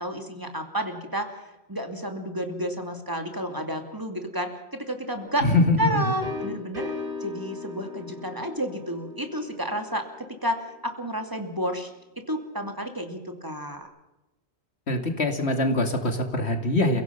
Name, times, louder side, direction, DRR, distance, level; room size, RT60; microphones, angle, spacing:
voice 1, 0.0-1.3 1.7-5.5 5.8-11.9 12.3-13.9, equal, 20° right, 5 dB, 2.6 m, -31 dB
sound 1, 5.1-10.8, left 3 dB, 35° right, 5.0 m, -39 dB
voice 2, 5.4-6.0 14.9-17.0, left 2 dB, 85° left, 5 dB, 2.8 m, -23 dB
29.0 x 17.0 x 5.9 m, 0.96 s
omnidirectional pair, 1.1 m